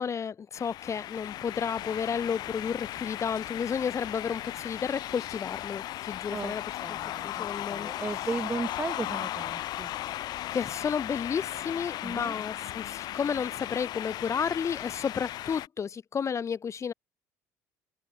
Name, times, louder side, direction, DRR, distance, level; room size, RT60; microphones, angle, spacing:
voice 1, 0.0-6.6 6.9-7.9 10.5-16.9, left 7 dB, 35° left, 1.3 m, -32 dB
sound 1, 0.5-15.7, left 14 dB, 55° left, 0.5 m, -36 dB
voice 2, 6.8-9.9 12.0-12.4, right 3 dB, 25° right, 3.7 m, -36 dB
hypercardioid pair, 60°, 8 cm